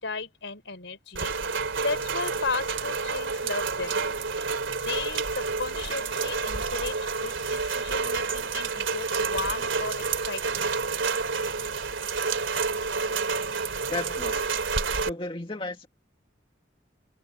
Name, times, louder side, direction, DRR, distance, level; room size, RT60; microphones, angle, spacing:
voice 1, 0.0-4.0 4.8-10.7, left 3 dB, 75° left, 4.6 m, -35 dB
Rain, 1.1-15.1, right 4 dB, 90° right, 3.1 m, -29 dB
voice 2, 13.9-14.4 15.0-15.9, left 2 dB, 25° left, 2.1 m, -34 dB
open air
head